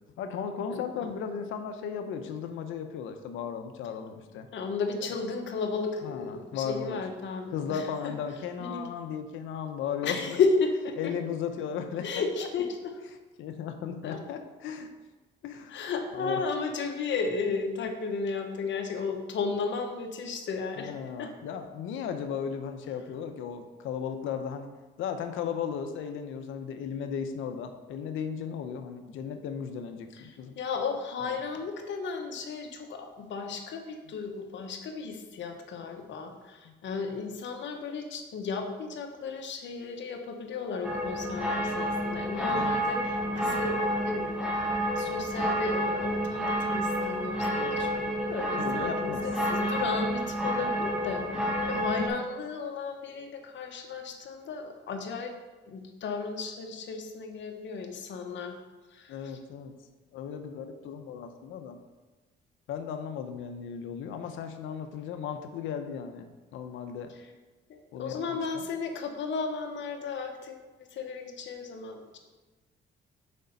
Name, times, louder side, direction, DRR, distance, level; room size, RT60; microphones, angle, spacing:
voice 1, 0.2-4.5 6.0-7.0 7.5-10.2 11.0-12.2 13.4-14.9 15.4-15.7 16.2-16.4 20.8-24.7 25.0-30.6 31.2-31.4 36.6-36.7 42.5-42.8 48.6-49.3 51.3-51.5 59.1-59.7 60.1-61.8 62.7-67.1 67.9-68.7, left 7 dB, 85° left, 7 dB, 0.8 m, -36 dB
voice 2, 0.7-1.1 4.5-8.1 8.6-8.8 10.0-11.3 12.0-12.9 14.0-14.2 15.7-20.9 21.2-21.3 30.1-47.9 48.2-55.3 55.7-58.6 58.9-59.4 67.7-70.6 70.9-72.2, left 4 dB, 65° left, 4 dB, 1.2 m, -34 dB
sound 1, 40.8-52.1, equal, 5° right, 1.3 m, -29 dB
6.6 x 5.2 x 5.3 m, 1.2 s
cardioid pair, 90°, 20 cm